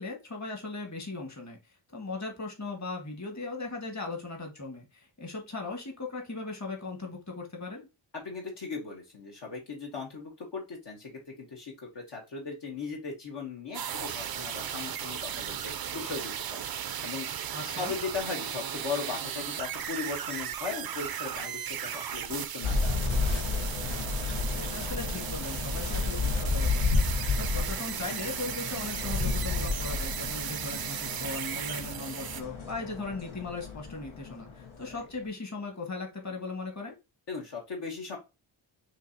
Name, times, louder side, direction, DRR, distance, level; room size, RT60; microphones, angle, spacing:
voice 1, 0.0-1.6 1.9-7.9 17.5-17.9 24.4-37.0, left 3 dB, 35° left, 2 dB, 1.6 m, -38 dB
voice 2, 8.1-16.7 17.0-17.3 17.8-23.3 37.3-38.2, left 4 dB, 60° left, -1 dB, 1.2 m, -38 dB
sound 1, 13.7-32.4, right 9 dB, 50° right, 0.5 m, -36 dB
sound 2, 22.6-35.1, left 4 dB, 85° left, 1.3 m, -31 dB
6.3 x 2.8 x 2.8 m, 0.26 s
wide cardioid pair, 100°, 47 cm